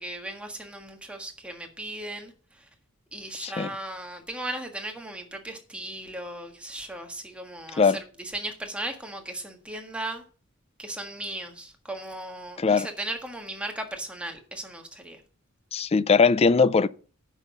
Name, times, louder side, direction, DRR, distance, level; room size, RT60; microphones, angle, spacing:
voice 1, 0.0-2.3 3.1-10.2 10.8-15.2, right 1 dB, 5° right, 1.6 m, -37 dB
voice 2, 3.4-3.7 7.8-8.0 12.6-12.9 15.7-16.9, left 5 dB, 30° left, 0.4 m, -20 dB
9.6 x 6.2 x 6.7 m
head